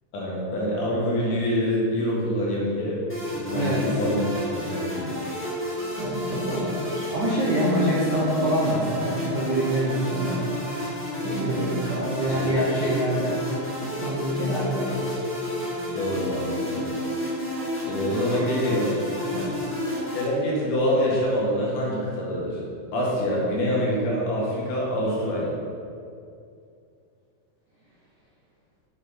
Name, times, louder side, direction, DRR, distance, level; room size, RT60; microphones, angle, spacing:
voice 1, 0.1-3.0 3.3-4.2 4.5-5.1 12.0-12.6 15.9-16.8 17.9-18.9 20.1-22.6 22.9-25.6, equal, 85° left, -5 dB, 3.3 m, -26 dB
sound 1, 3.1-20.2, left 1 dB, 5° left, 1.2 m, -31 dB
voice 2, 3.5-3.8 4.1-4.2 6.0-10.5 11.2-13.7 14.0-15.0 19.3-19.5, right 1 dB, 65° right, -7 dB, 1.1 m, -26 dB
7.7 x 7.4 x 4.3 m, 2.4 s
omnidirectional pair, 3.6 m